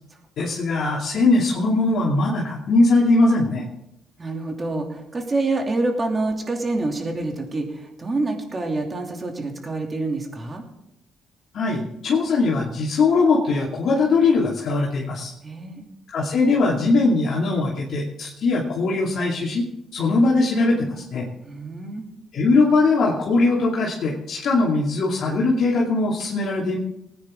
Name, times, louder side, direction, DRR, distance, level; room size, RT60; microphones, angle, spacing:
voice 1, 0.4-3.6 11.5-15.3 16.1-19.6 19.9-21.3 22.3-26.8, left 3 dB, 65° left, -5 dB, 2.6 m, -20 dB
voice 2, 4.2-10.6 15.4-15.8 21.4-22.1, right 2 dB, 30° right, 2 dB, 2.8 m, -27 dB
19.5 x 9.7 x 3.8 m, 0.83 s
cardioid pair, 90°, 0 cm